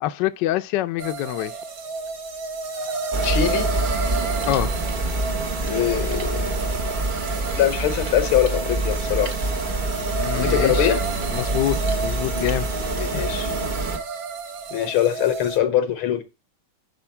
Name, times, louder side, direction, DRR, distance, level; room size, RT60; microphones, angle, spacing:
voice 1, 0.0-1.5 4.5-4.7 10.2-10.9 11.3-12.7 13.1-13.2, left 14 dB, 70° left, 1.1 m, -25 dB
sound 1, 1.0-15.6, right 4 dB, 70° right, 1.8 m, -31 dB
sound 2, 3.1-14.0, right 2 dB, 50° right, 0.6 m, -26 dB
voice 2, 3.2-3.7 5.6-6.6 7.6-9.4 10.3-11.0 13.0-13.5 14.7-16.2, left 11 dB, 90° left, 2.0 m, -22 dB
11.0 x 4.5 x 4.4 m
omnidirectional pair, 2.3 m